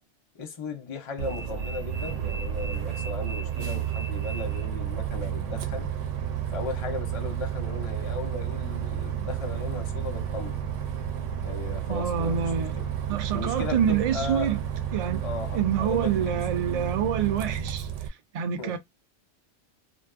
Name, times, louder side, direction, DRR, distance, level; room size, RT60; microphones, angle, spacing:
voice 1, 0.3-5.9 6.5-10.6 11.4-12.9 13.3-14.5 15.2-16.6 18.6-18.8, left 4 dB, 40° left, 0.5 m, -37 dB
Bus, 1.2-18.1, right 9 dB, 80° right, 0.9 m, -31 dB
voice 2, 11.9-12.7 13.1-14.6 14.9-15.3 15.5-17.9 18.3-18.8, right 8 dB, 65° right, 0.3 m, -27 dB
2.5 x 2.3 x 2.4 m
omnidirectional pair, 1.3 m